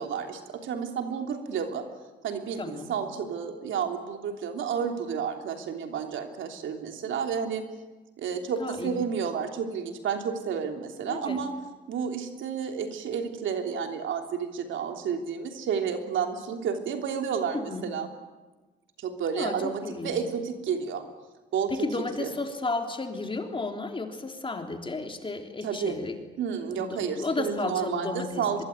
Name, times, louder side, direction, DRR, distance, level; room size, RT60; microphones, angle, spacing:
voice 1, 0.0-1.8 2.2-7.6 8.2-11.5 11.9-18.1 19.0-21.0 21.5-21.9 22.2-22.3 25.6-26.0 26.4-28.6, right 7 dB, 75° right, 4 dB, 3.3 m, -31 dB
voice 2, 2.6-2.9 8.6-9.0 11.1-11.5 17.5-17.9 19.4-20.2 21.7-26.2 26.7-28.6, left 3 dB, 25° left, 4 dB, 3.5 m, -33 dB
24.0 x 22.0 x 9.5 m, 1.2 s
cardioid pair, 90°, 20 cm